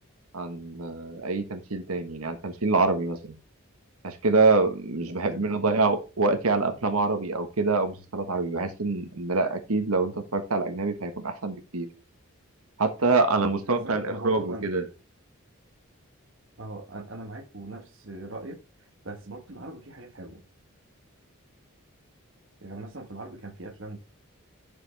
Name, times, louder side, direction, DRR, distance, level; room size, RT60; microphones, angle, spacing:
voice 1, 0.3-3.3 4.0-11.9 12.8-14.8, right 3 dB, 85° right, 1.4 m, -25 dB
voice 2, 13.7-14.7 16.6-18.6 19.0-20.4 22.6-24.0, right 2 dB, 60° right, 1.4 m, -40 dB
9.9 x 6.9 x 3.4 m
head